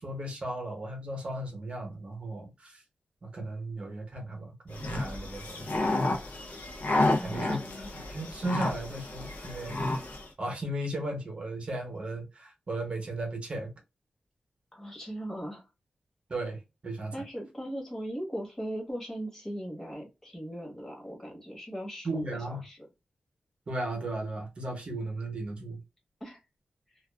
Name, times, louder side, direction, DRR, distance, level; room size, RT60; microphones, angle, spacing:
voice 1, 0.0-2.8 3.2-5.9 7.2-7.6 8.1-9.8 10.4-13.7 16.3-17.1 22.0-22.6 23.7-25.8, right 2 dB, 45° right, 0.9 m, -36 dB
sound 1, 4.7-10.3, left 2 dB, 75° left, 0.7 m, -31 dB
voice 2, 7.1-7.9 14.7-15.7 17.1-22.8 26.2-26.4, equal, 15° left, 1.1 m, -39 dB
2.4 x 2.3 x 2.2 m
wide cardioid pair, 135°, 3 cm